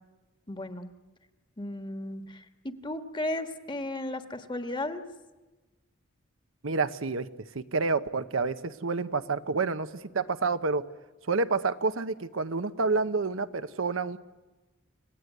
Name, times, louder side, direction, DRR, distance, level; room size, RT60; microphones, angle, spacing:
voice 1, 0.5-0.9 1.6-5.0, left 1 dB, 25° left, 8 dB, 1.5 m, -35 dB
voice 2, 6.6-7.3 7.5-10.8 11.3-14.2, right 4 dB, 90° right, 11 dB, 0.9 m, -28 dB
29.5 x 17.5 x 9.4 m, 1.2 s
head